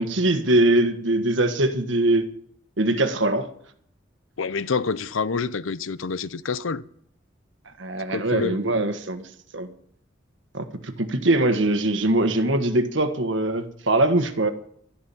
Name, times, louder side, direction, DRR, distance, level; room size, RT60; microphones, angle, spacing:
voice 1, 0.0-2.3 2.8-3.5 7.8-9.3 9.5-9.7 10.5-14.5, right 2 dB, 65° right, 1.4 m, -22 dB
voice 2, 4.4-6.8 8.1-8.6, left 5 dB, 90° left, 0.7 m, -27 dB
12.5 x 11.5 x 7.0 m
head